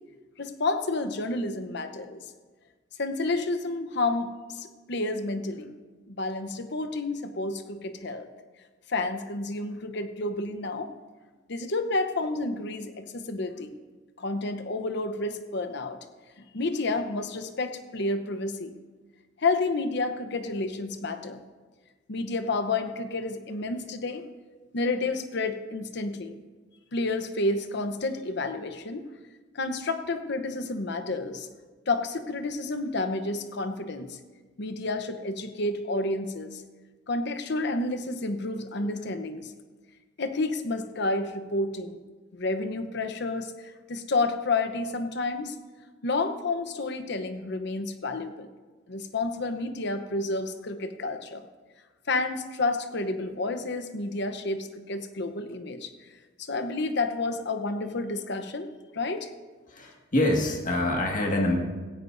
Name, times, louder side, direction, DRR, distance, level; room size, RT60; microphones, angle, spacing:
voice 1, 0.4-2.2 3.0-5.7 6.1-8.3 8.9-10.9 11.5-13.7 14.2-16.0 16.5-18.7 19.4-21.4 22.1-24.3 24.7-26.4 26.9-29.0 29.5-31.5 31.9-34.2 34.6-36.6 37.1-39.5 40.2-42.0 42.3-45.5 46.0-48.5 48.9-51.4 52.1-55.9 56.4-59.3, left 2 dB, 65° left, 9 dB, 0.9 m, -30 dB
voice 2, 59.7-61.6, left 1 dB, 45° left, 0 dB, 1.9 m, -25 dB
17.0 x 15.5 x 2.6 m, 1.3 s
head